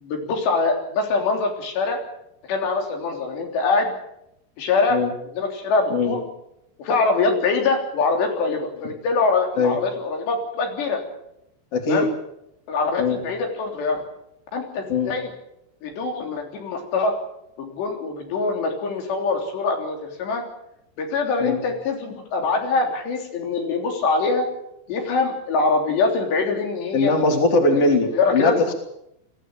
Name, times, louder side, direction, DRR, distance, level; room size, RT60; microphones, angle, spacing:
voice 1, 0.0-2.0 2.5-3.9 4.6-5.0 5.4-6.2 6.8-11.0 11.9-12.1 12.7-14.0 14.5-15.3 15.8-17.1 17.6-20.4 21.0-24.5 24.9-27.1 27.7-28.5, left 4 dB, 80° left, 3 dB, 5.6 m, -23 dB
voice 2, 11.7-12.1 13.0-13.2 14.9-15.1 21.4-21.6 26.9-28.7, left 3 dB, 40° left, 4 dB, 3.7 m, -20 dB
22.5 x 16.0 x 9.0 m, 0.80 s
omnidirectional pair, 4.8 m